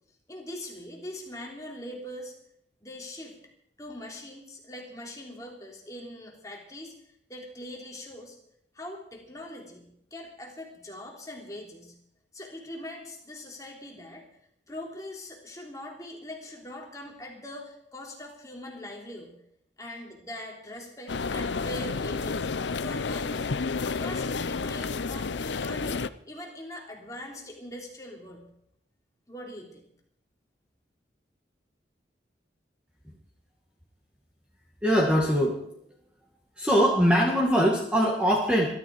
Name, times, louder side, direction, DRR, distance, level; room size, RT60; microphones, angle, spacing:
voice 1, 0.3-2.3 2.8-3.4 3.8-6.9 7.3-8.4 8.7-11.9 12.3-14.2 14.7-19.3 19.8-22.5 22.8-23.5 23.9-26.0 26.3-28.5 29.3-29.8, left 1 dB, 20° left, 0 dB, 3.3 m, -42 dB
sound 1, 21.1-26.1, left 4 dB, 80° left, 0.6 m, -30 dB
voice 2, 34.8-35.6 36.6-38.7, equal, 5° right, -2 dB, 2.1 m, -22 dB
22.5 x 13.0 x 4.8 m, 0.71 s
head